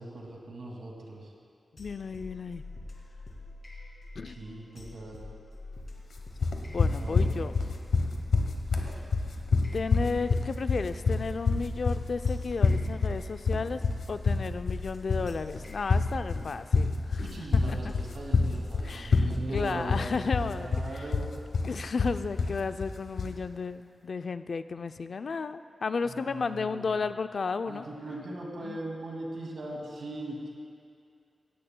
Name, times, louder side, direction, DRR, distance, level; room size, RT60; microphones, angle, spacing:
voice 1, 0.0-1.3 4.3-5.2 6.9-7.3 8.3-8.4 8.8-9.1 17.2-21.3 26.0-27.0 27.6-30.5, right 1 dB, 70° right, -2 dB, 2.2 m, -40 dB
voice 2, 1.8-2.6 4.2-4.3 6.4-7.5 9.7-17.2 17.5-17.8 18.8-20.7 21.7-27.8 28.6-28.8, left 4 dB, 50° left, 10 dB, 0.4 m, -33 dB
sound 1, 1.8-19.5, left 2 dB, 35° left, 2.1 m, -46 dB
sound 2, 6.4-23.4, left 4 dB, 80° left, 1.0 m, -27 dB
17.0 x 16.0 x 2.2 m, 2.4 s
wide cardioid pair, 175°, 0 cm